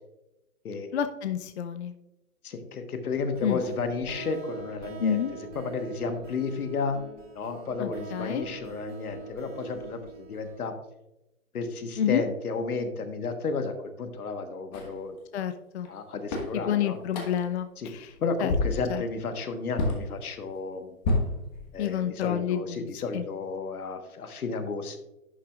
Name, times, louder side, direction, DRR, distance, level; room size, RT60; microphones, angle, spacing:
voice 1, 0.9-1.9 3.4-3.6 5.0-5.3 7.8-8.5 12.0-12.2 15.3-15.9 16.7-18.1 18.4-18.5 18.9-19.0 21.8-22.9 23.1-23.2, left 9 dB, 50° left, 10 dB, 0.4 m, -29 dB
voice 2, 2.4-7.0 7.3-10.7 11.5-15.2 15.9-17.0 17.8-17.9 18.2-20.9 21.7-25.0, left 4 dB, 80° left, 7 dB, 1.3 m, -32 dB
sound 1, 3.1-10.7, right 5 dB, 55° right, 2.0 m, -43 dB
sound 2, 14.7-15.0 15.8-15.9 16.3-16.6 17.1-17.5 18.0-18.2 18.5-18.9 19.8-20.0 21.0-22.0, left 2 dB, 30° left, 1.3 m, -28 dB
11.0 x 6.2 x 2.4 m, 0.95 s
hypercardioid pair, 155°, 44 cm